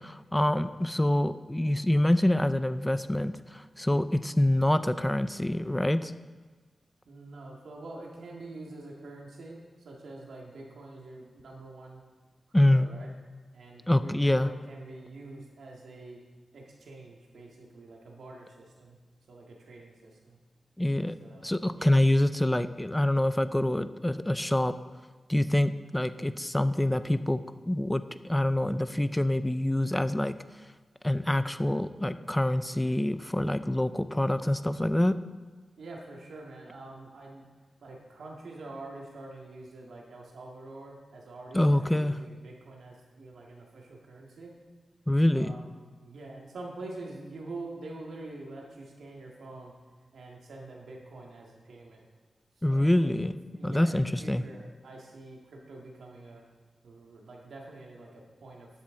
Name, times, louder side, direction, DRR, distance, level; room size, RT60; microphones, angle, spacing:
voice 1, 0.0-6.1 12.5-12.9 13.9-14.5 20.8-21.2 21.4-24.7 25.3-27.4 27.7-30.3 31.0-35.1 41.5-42.2 45.1-45.5 52.6-53.3 53.6-54.4, left 1 dB, 10° left, 12 dB, 0.4 m, -26 dB
voice 2, 7.1-12.0 12.5-13.1 13.5-16.2 16.5-19.0 19.3-20.4 21.2-22.0 35.8-37.5 37.8-44.5 45.3-49.7 50.1-52.0 52.6-53.1 53.5-56.4 56.8-58.7, right 2 dB, 90° right, -1 dB, 1.8 m, -46 dB
12.5 x 8.3 x 3.8 m, 1.4 s
wide cardioid pair, 85°, 0 cm